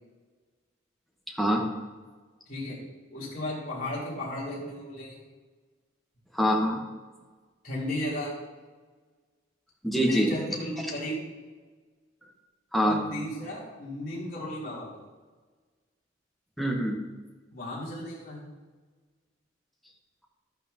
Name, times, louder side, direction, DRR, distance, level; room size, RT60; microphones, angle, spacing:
voice 1, 1.4-1.7 6.3-6.8 9.8-10.3 12.7-13.0 16.6-17.0, equal, ahead, -1 dB, 1.2 m, -24 dB
voice 2, 3.1-5.2 7.6-8.3 9.9-11.2 12.8-14.9 17.5-18.4, left 1 dB, 45° left, -6 dB, 3.7 m, -34 dB
12.0 x 11.0 x 2.9 m, 1.4 s
head